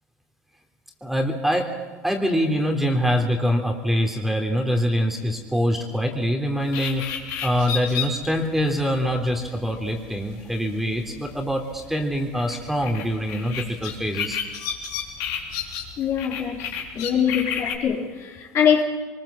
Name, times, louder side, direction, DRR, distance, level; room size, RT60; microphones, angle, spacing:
voice 1, 1.0-1.7 2.0-7.1 7.4-14.4, equal, 5° right, 3.3 m, -24 dB
sound 1, 6.6-17.8, left 7 dB, 65° left, 4.1 m, -33 dB
voice 2, 16.0-16.7 17.0-18.8, left 8 dB, 50° left, 3.9 m, -23 dB
23.5 x 21.0 x 7.5 m
supercardioid pair, 95°, 6 cm